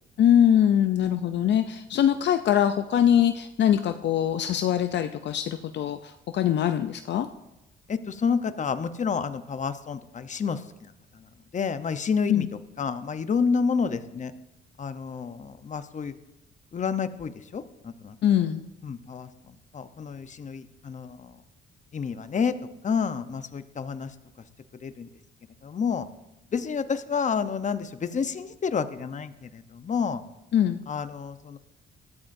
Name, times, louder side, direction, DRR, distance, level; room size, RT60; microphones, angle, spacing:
voice 1, 0.2-7.3 12.3-12.5 18.2-18.6 30.5-30.8, left 10 dB, 65° left, 8 dB, 0.6 m, -22 dB
voice 2, 7.9-11.3 11.5-12.5 12.8-14.3 14.8-16.1 16.7-18.2 18.8-21.4 21.9-22.5 22.8-24.1 24.8-25.1 25.6-26.1 26.5-30.2 30.9-31.6, left 6 dB, 40° left, 10 dB, 0.9 m, -29 dB
20.5 x 13.5 x 2.7 m, 0.90 s
cardioid pair, 90°, 20 cm